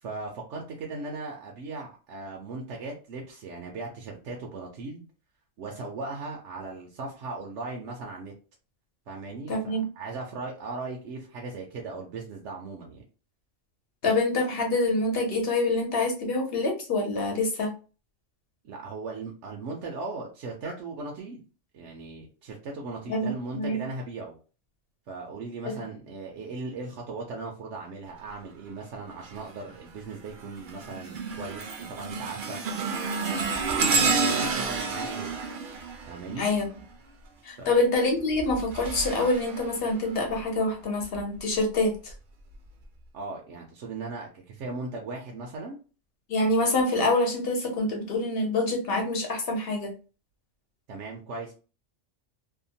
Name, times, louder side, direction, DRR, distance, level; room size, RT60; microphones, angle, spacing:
voice 1, 0.0-5.0 5.6-8.3 9.1-13.0 18.6-21.4 21.7-24.4 25.1-32.6 33.3-35.4 36.1-36.5 37.6-37.7 43.1-45.8 50.9-51.5, right 3 dB, 75° right, 0 dB, 1.0 m, -38 dB
voice 2, 9.5-9.8 14.0-17.7 23.1-23.8 25.6-25.8 36.4-36.7 37.4-42.1 46.3-49.9, left 2 dB, 55° left, 2 dB, 1.0 m, -26 dB
sound 1, 29.2-29.6 30.1-36.9 38.2-40.4 41.0-41.2 42.1-42.2, right 4 dB, 55° right, 0.6 m, -30 dB
2.8 x 2.2 x 2.7 m, 0.35 s
omnidirectional pair, 1.2 m